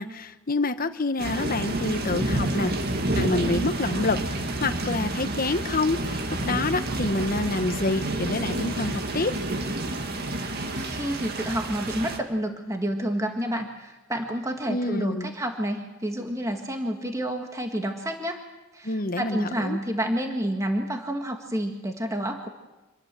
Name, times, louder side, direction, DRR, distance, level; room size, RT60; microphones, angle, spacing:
voice 1, 0.0-2.7 3.1-4.2 4.6-9.3 14.7-15.3 18.8-19.8, left 2 dB, 45° left, 10 dB, 1.2 m, -27 dB
sound 1, 1.2-12.2, right 1 dB, 50° right, 2.1 m, -29 dB
voice 2, 10.4-18.4 18.7-22.5, right 1 dB, 15° right, 3 dB, 1.8 m, -29 dB
26.5 x 21.0 x 7.6 m, 1.1 s
head